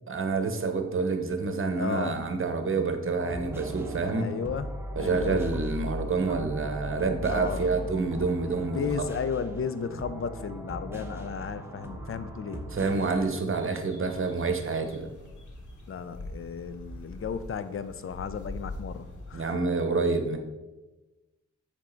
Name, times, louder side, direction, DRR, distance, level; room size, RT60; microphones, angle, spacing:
voice 1, 0.1-4.3 5.0-8.9 12.7-15.1 19.3-20.4, right 4 dB, 45° right, 5 dB, 0.8 m, -28 dB
voice 2, 1.8-2.2 4.2-4.7 5.0-5.4 7.3-7.9 8.5-12.7 15.9-19.6, left 6 dB, 45° left, 12 dB, 0.4 m, -34 dB
sound 1, 3.2-13.3, equal, 10° right, 0.8 m, -38 dB
sound 2, 12.8-19.3, left 1 dB, 85° left, 1.2 m, -44 dB
7.3 x 3.6 x 3.9 m, 1.1 s
wide cardioid pair, 105°, 29 cm